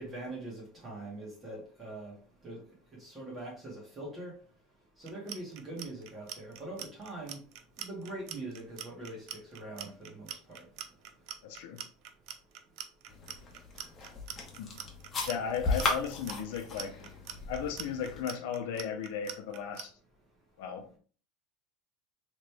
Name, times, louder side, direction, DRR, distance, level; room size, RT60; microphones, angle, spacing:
voice 1, 0.0-2.1 2.4-2.6 3.0-4.4 5.0-7.4 7.8-10.6, right 2 dB, 25° right, 1.9 m, -43 dB
Clock, 5.0-19.8, right 10 dB, 60° right, 0.6 m, -43 dB
voice 2, 11.4-11.8 14.6-14.8 15.3-17.0 17.5-19.9 20.6-21.0, left 7 dB, 80° left, 0.8 m, -36 dB
sound 1, 13.1-18.2, left 3 dB, 30° left, 1.1 m, -36 dB
3.9 x 3.2 x 3.4 m
supercardioid pair, 130°, 0 cm